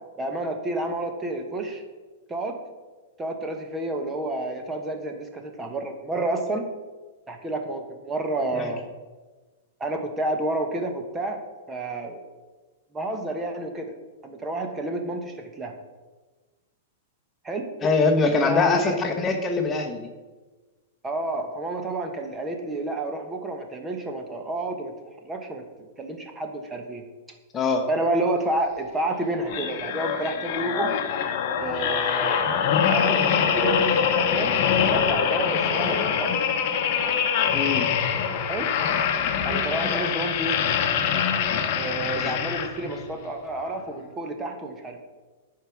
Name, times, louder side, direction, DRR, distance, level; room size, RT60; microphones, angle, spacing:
voice 1, 0.2-1.8 2.3-2.6 3.2-6.6 7.3-8.9 9.8-11.4 11.7-12.2 12.9-13.9 14.2-15.7 17.4-17.7 18.4-18.9 21.0-24.9 25.2-27.0 27.9-30.9 31.5-32.6 32.9-33.2 33.5-36.5 38.5-38.7 39.4-40.6 41.8-45.0, right 2 dB, 15° right, 4 dB, 1.0 m, -30 dB
voice 2, 17.8-20.1 27.5-27.9 37.5-37.9 42.1-42.3, left 4 dB, 20° left, 4 dB, 1.1 m, -23 dB
sound 1, 29.5-43.0 43.6-43.8, left 7 dB, 50° left, 0.9 m, -24 dB
11.0 x 4.8 x 4.7 m, 1.3 s
hypercardioid pair, 135°, 0 cm